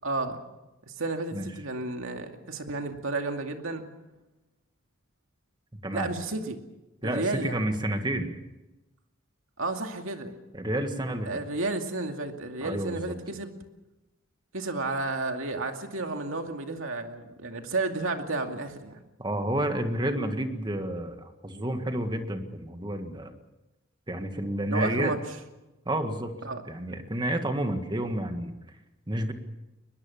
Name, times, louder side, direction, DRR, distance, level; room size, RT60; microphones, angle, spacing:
voice 1, 0.0-0.4 0.9-3.9 5.9-6.6 7.0-7.7 9.6-10.4 11.3-13.5 14.5-19.0 24.7-25.2 26.4-26.6, right 2 dB, 75° right, 4 dB, 2.4 m, -32 dB
voice 2, 7.0-8.3 10.5-11.4 12.6-13.1 19.2-23.3 24.1-25.1 25.9-26.3 26.7-28.5 29.1-29.3, right 1 dB, 20° right, 6 dB, 1.8 m, -30 dB
22.5 x 21.0 x 7.2 m, 1.0 s
head